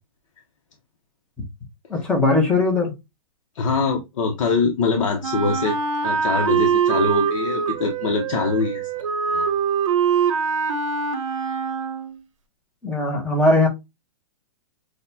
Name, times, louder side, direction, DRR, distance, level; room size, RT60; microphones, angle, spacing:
voice 1, 1.9-2.9 12.8-13.7, left 2 dB, 5° left, 0.7 m, -19 dB
voice 2, 3.5-5.8 6.0-8.8 9.3-9.4, left 4 dB, 60° left, 0.9 m, -23 dB
Wind instrument woodwind instrument, 5.2-12.2, right 6 dB, 60° right, 0.8 m, -23 dB
6.4 x 2.2 x 2.7 m
hypercardioid pair, 170°, 18 cm